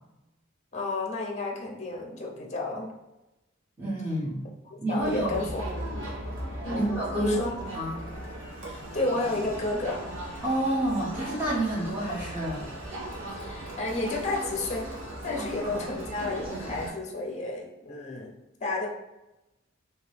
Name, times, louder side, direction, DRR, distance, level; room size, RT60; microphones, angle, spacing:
voice 1, 0.7-2.9 4.7-5.9 6.6-6.9 7.2-7.5 8.6-10.0 13.4-14.9 15.2-18.3 18.6-18.9, left 2 dB, 35° left, -1 dB, 0.6 m, -32 dB
voice 2, 3.8-4.4 4.8-5.4 6.7-7.3 7.7-7.9 10.4-12.6, right 1 dB, 10° right, -10 dB, 0.9 m, -28 dB
Crowd, 5.0-16.9, right 1 dB, 90° right, 0.9 m, -37 dB
2.9 x 2.8 x 3.2 m, 0.96 s
head